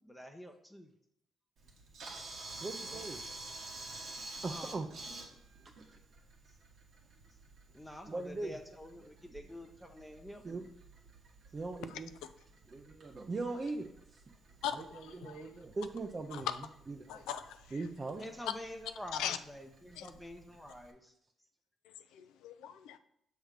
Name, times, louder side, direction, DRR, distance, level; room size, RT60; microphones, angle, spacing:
voice 1, 0.1-0.9 2.9-3.0 4.5-4.7 7.7-10.6 18.2-21.0, left 1 dB, 5° left, 4 dB, 0.6 m, -47 dB
Camera, 1.6-20.9, right 2 dB, 70° right, 1.2 m, -51 dB
voice 2, 2.6-3.2 4.4-4.9 8.1-8.6 9.0-9.1 10.4-10.7 11.5-12.1 12.7-13.9 14.7-16.6 16.9-17.2 17.7-18.2 19.9-20.0, right 3 dB, 40° right, 4 dB, 0.5 m, -40 dB
voice 3, 14.6-15.5 16.3-16.4 17.1-17.6 19.1-19.4 20.0-20.1 22.1-23.0, left 9 dB, 90° left, 10 dB, 0.3 m, -40 dB
6.3 x 3.2 x 5.0 m, 0.75 s
supercardioid pair, 70°, 0 cm